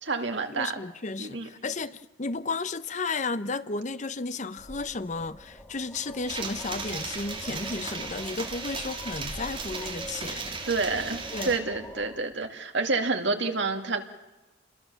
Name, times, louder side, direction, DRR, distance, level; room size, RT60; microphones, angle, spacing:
voice 1, 0.0-0.8 1.2-1.5 10.7-14.0, right 3 dB, 60° right, 2.4 m, -28 dB
voice 2, 0.5-10.6 11.3-11.6, left 3 dB, 40° left, 0.8 m, -33 dB
sound 1, 4.6-12.2, left 1 dB, 15° left, 3.5 m, -45 dB
sound 2, 6.3-11.6, right 4 dB, 30° right, 3.8 m, -36 dB
29.0 x 21.5 x 7.1 m
head